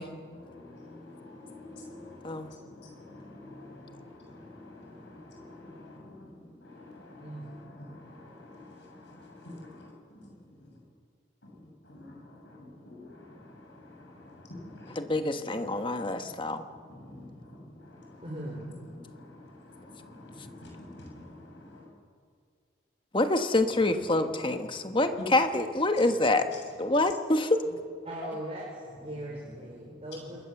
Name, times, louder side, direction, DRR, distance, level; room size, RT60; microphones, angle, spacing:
voice 1, 0.0-10.8 11.4-18.3 18.7-21.9 23.7-23.9 24.3-24.4 24.7-25.3 26.5-26.6 27.0-27.1 29.8-30.3, left 2 dB, 60° left, 0 dB, 6.8 m, -48 dB
voice 2, 15.0-16.6 23.1-26.5 26.8-27.6, left 2 dB, 25° left, 7 dB, 1.3 m, -26 dB
voice 3, 18.2-18.7 28.1-30.4, right 1 dB, 30° right, -2 dB, 3.8 m, -39 dB
27.0 x 21.0 x 7.2 m, 2.2 s
head